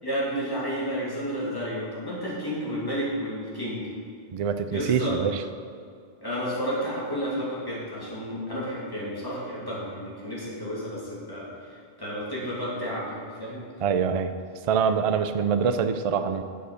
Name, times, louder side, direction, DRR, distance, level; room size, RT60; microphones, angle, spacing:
voice 1, 0.0-3.9 4.7-5.2 6.2-13.6, equal, 20° left, -7 dB, 2.7 m, -31 dB
voice 2, 4.3-5.4 13.8-14.3 14.7-16.4, right 6 dB, 50° right, 9 dB, 0.4 m, -24 dB
8.1 x 6.5 x 6.4 m, 2.2 s
omnidirectional pair, 1.1 m